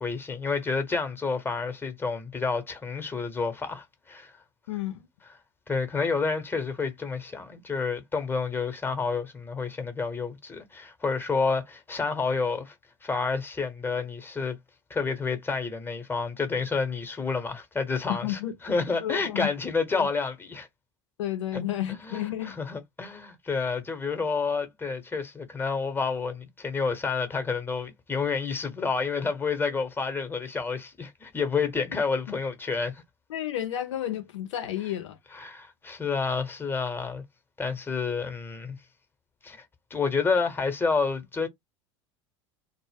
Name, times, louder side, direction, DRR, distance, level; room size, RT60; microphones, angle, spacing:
voice 1, 0.0-4.3 5.7-12.7 13.0-14.6 14.9-20.7 21.5-21.6 22.0-33.0 35.3-37.2 37.6-38.8 39.4-39.6 39.9-41.5, left 4 dB, 15° left, 0.8 m, -29 dB
voice 2, 4.7-5.1 18.1-18.5 19.0-19.5 19.9-20.1 21.2-22.6 33.3-35.2, left 12 dB, 75° left, 0.5 m, -31 dB
2.0 x 2.0 x 3.3 m
hypercardioid pair, 80°, 15 cm